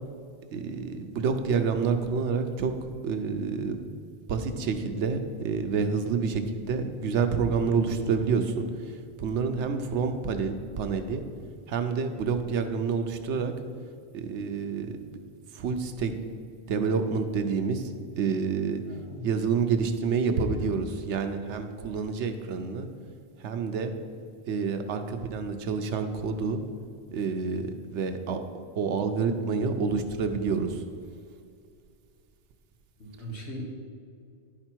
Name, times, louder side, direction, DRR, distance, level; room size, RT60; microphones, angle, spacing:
voice 1, 0.5-2.7 3.0-3.8 4.3-8.7 9.2-11.2 11.7-13.5 14.1-15.0 15.6-16.1 16.7-17.8 18.2-18.8 19.2-22.9 23.4-23.9 24.5-26.6 27.1-27.6 27.9-28.4 28.8-30.8, right 5 dB, 85° right, 7 dB, 1.0 m, -28 dB
voice 2, 18.9-19.3 33.0-33.7, equal, 75° left, -2 dB, 1.8 m, -39 dB
10.5 x 4.9 x 4.5 m, 2.3 s
omnidirectional pair, 1.2 m